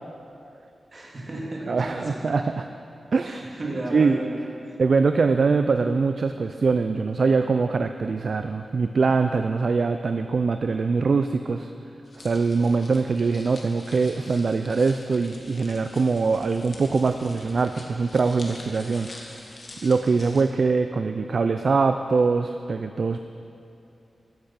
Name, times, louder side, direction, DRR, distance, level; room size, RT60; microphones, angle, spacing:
voice 1, 0.9-2.4 3.3-4.8, right 1 dB, 40° right, -2 dB, 2.1 m, -34 dB
voice 2, 1.7-2.6 3.1-3.4 3.9-4.2 4.8-11.7 12.2-19.1 19.8-23.2, right 4 dB, 60° right, 7 dB, 0.4 m, -23 dB
sound 1, 12.0-20.4, left 2 dB, 50° left, 1.7 m, -45 dB
14.5 x 8.5 x 5.8 m, 2.7 s
wide cardioid pair, 130°, 0 cm